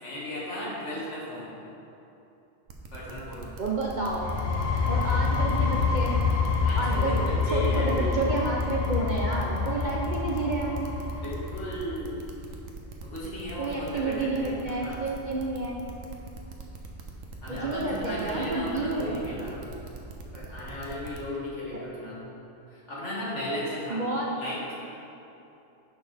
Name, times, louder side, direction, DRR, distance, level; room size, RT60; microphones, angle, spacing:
voice 1, 0.0-1.4 2.9-3.5 6.6-8.2 11.2-12.2 13.0-15.0 17.4-19.5 20.3-22.2 22.7-24.0 24.4-24.6, left 1 dB, 60° left, -8 dB, 2.3 m, -35 dB
sound 1, 2.7-21.2, right 3 dB, 80° right, 1.2 m, -42 dB
voice 2, 3.6-4.3 4.9-6.2 6.7-7.2 7.5-10.8 13.6-15.8 17.5-19.4 21.7-21.8 23.9-24.4, right 2 dB, 45° right, -3 dB, 0.7 m, -30 dB
sound 2, 4.1-11.7, left 4 dB, 40° left, 0.6 m, -27 dB
9.9 x 6.1 x 3.4 m, 2.8 s
omnidirectional pair, 1.3 m